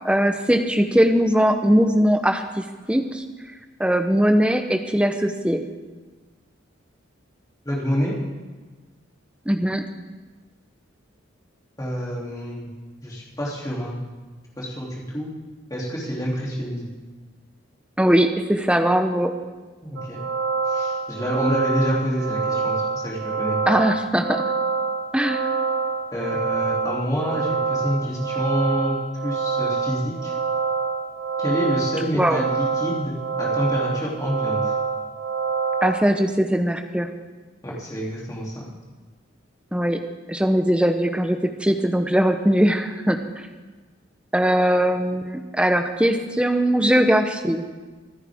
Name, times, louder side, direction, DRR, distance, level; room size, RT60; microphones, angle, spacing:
voice 1, 0.0-3.2 3.8-5.6 9.5-9.9 18.0-19.3 23.7-24.4 25.1-25.5 32.1-32.4 35.8-37.1 39.7-40.0 40.3-43.2 44.3-47.6, equal, 5° right, 6 dB, 0.8 m, -20 dB
voice 2, 7.6-8.1 11.8-12.7 13.0-13.9 14.6-15.3 15.7-16.8 19.8-20.2 20.6-23.6 26.1-28.9 29.2-30.3 31.4-34.7 37.6-38.6, equal, 15° left, -5 dB, 2.9 m, -27 dB
sound 1, 20.0-36.0, right 5 dB, 60° right, 0.8 m, -26 dB
24.5 x 10.0 x 3.6 m, 1.3 s
head